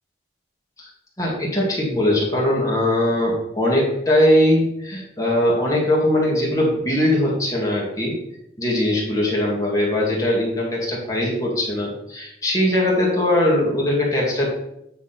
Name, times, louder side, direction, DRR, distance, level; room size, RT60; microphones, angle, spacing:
voice 1, 1.2-8.2 8.6-14.5, left 1 dB, 20° left, -4 dB, 2.2 m, -20 dB
9.1 x 3.6 x 5.9 m, 0.80 s
head